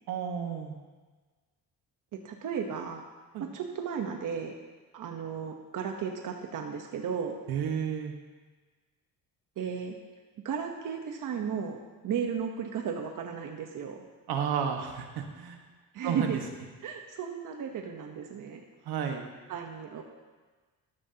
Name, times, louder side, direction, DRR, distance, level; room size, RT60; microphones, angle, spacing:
voice 1, 0.1-0.8 3.3-3.4 7.5-8.1 14.3-15.6 16.0-16.4 18.8-19.3, right 7 dB, 80° right, 3 dB, 1.5 m, -32 dB
voice 2, 2.1-3.1 3.4-4.5 4.9-7.4 9.6-10.0 10.4-11.8 12.0-14.0 15.9-16.4 16.8-18.6 19.5-20.0, right 7 dB, 55° right, 3 dB, 1.1 m, -34 dB
13.5 x 12.5 x 2.9 m, 1.4 s
cardioid pair, 120°, 37 cm